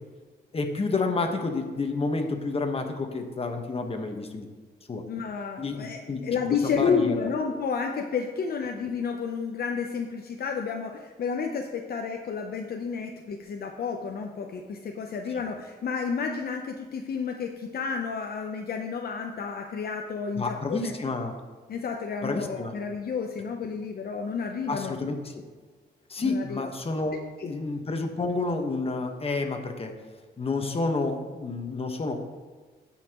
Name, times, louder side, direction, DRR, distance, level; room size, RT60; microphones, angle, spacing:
voice 1, 0.5-4.5 4.9-5.0 5.6-6.2 6.6-7.3 15.3-15.5 20.4-21.3 22.2-22.7 24.7-25.4 26.1-27.2 27.5-29.9 30.4-32.1, left 3 dB, 35° left, 4 dB, 1.3 m, -29 dB
voice 2, 5.1-20.9 21.7-25.0 26.2-26.7 27.4-27.5, left 5 dB, 60° left, 2 dB, 0.8 m, -31 dB
16.0 x 5.8 x 3.0 m, 1.5 s
cardioid pair, 105°, 18 cm